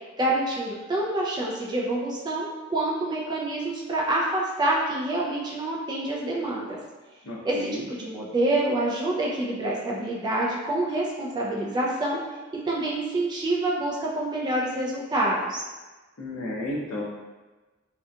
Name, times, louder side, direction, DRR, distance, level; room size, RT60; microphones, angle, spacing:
voice 1, 0.2-6.8 7.4-12.2 12.7-15.6, right 1 dB, 20° right, -4 dB, 0.3 m, -27 dB
voice 2, 7.2-7.8 16.2-17.0, left 1 dB, 65° left, -3 dB, 0.6 m, -32 dB
2.7 x 2.3 x 2.2 m, 1.2 s
head